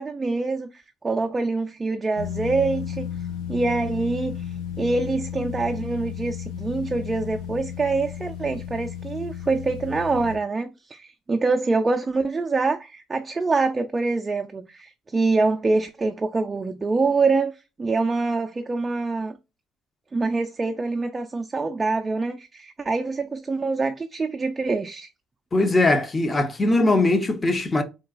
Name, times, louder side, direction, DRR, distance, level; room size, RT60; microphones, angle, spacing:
voice 1, 0.0-3.1 3.5-19.4 20.1-25.1, right 3 dB, 25° right, 0.3 m, -25 dB
sound 1, 2.2-10.4, left 9 dB, 85° left, 1.0 m, -33 dB
voice 2, 25.5-27.8, left 2 dB, 25° left, 0.6 m, -20 dB
3.7 x 2.2 x 2.4 m
supercardioid pair, 80°, 0 cm